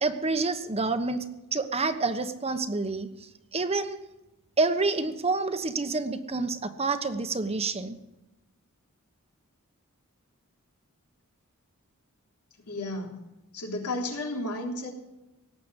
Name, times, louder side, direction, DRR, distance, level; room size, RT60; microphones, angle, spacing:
voice 1, 0.0-1.2 1.5-3.1 3.5-4.0 4.6-8.0, right 3 dB, 30° right, 9 dB, 1.1 m, -28 dB
voice 2, 12.7-13.2 13.5-14.9, left 2 dB, 90° left, 1 dB, 3.5 m, -33 dB
18.0 x 7.9 x 9.9 m, 0.96 s
head